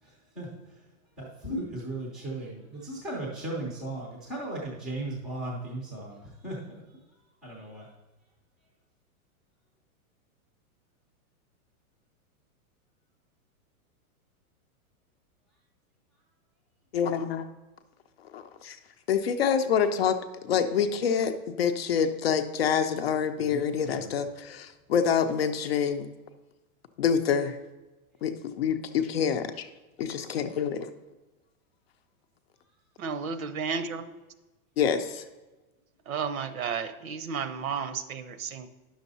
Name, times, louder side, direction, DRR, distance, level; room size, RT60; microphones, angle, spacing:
voice 1, 0.0-0.5 1.2-6.8 7.4-7.9 23.4-24.2, right 1 dB, ahead, -3 dB, 0.5 m, -37 dB
voice 2, 16.9-17.5 18.3-18.8 19.1-20.1 20.4-26.1 27.0-27.6 28.2-29.7 30.0-30.8 34.8-35.2, left 7 dB, 45° left, 7 dB, 0.5 m, -26 dB
voice 3, 33.0-34.2 36.1-38.7, right 6 dB, 70° right, 11 dB, 0.9 m, -33 dB
9.8 x 6.4 x 4.0 m, 1.2 s
supercardioid pair, 175°, 44 cm